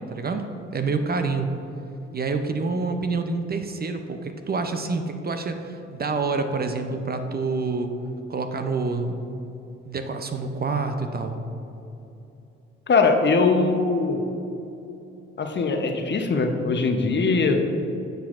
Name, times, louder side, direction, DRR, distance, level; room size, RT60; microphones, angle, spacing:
voice 1, 0.1-0.5 0.7-1.5 2.1-7.9 8.3-9.2 9.9-11.4, right 4 dB, 30° right, 6 dB, 0.6 m, -27 dB
voice 2, 12.9-14.2 15.4-17.6, left 4 dB, 35° left, 4 dB, 0.8 m, -21 dB
10.0 x 5.8 x 2.5 m, 2.8 s
hypercardioid pair, 50°, 30 cm